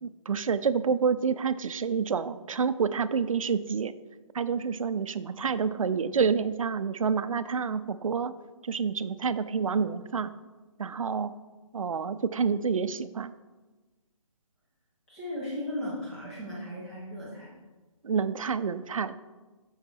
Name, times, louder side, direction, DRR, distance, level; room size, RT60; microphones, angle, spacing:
voice 1, 0.0-3.9 4.3-8.3 8.6-10.3 10.8-11.3 11.7-13.3 18.0-19.1, right 6 dB, 80° right, 13 dB, 0.5 m, -28 dB
voice 2, 15.1-17.5, left 1 dB, ahead, -8 dB, 0.4 m, -36 dB
6.7 x 6.5 x 4.6 m, 1.2 s
hypercardioid pair, 170°, 17 cm